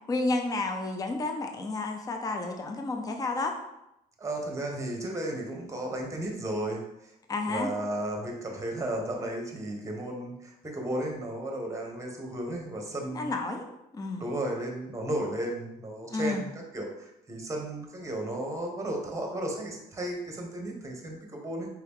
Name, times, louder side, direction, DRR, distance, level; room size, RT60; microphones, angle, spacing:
voice 1, 0.1-3.5 7.3-7.7 13.1-13.6 13.9-14.3 16.1-16.4, left 3 dB, 20° left, 4 dB, 0.5 m, -31 dB
voice 2, 4.2-7.1 7.5-13.3 14.2-16.5 16.7-21.7, right 1 dB, 15° right, 1 dB, 1.0 m, -34 dB
4.6 x 2.9 x 3.6 m, 0.86 s
cardioid pair, 110°, 17 cm